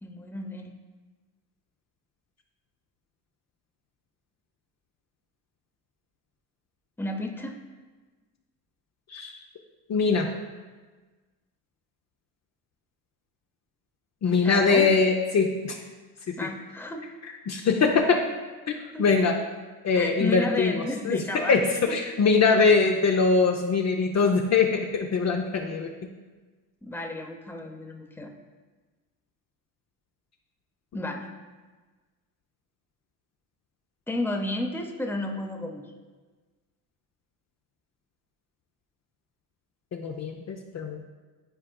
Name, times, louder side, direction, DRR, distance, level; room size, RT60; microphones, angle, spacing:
voice 1, 0.0-0.7 7.0-7.6 14.4-14.9 16.4-17.1 18.8-19.0 19.9-21.6 21.9-22.0 26.8-28.3 30.9-31.3 34.1-35.8, left 2 dB, 5° left, 3 dB, 0.7 m, -32 dB
voice 2, 9.9-10.3 14.2-15.8 16.3-16.4 17.5-18.2 18.7-19.3 19.8-20.8 21.0-21.2 21.5-25.9 39.9-41.0, left 4 dB, 40° left, 2 dB, 0.6 m, -22 dB
10.0 x 4.2 x 2.3 m, 1.3 s
supercardioid pair, 65°, 42 cm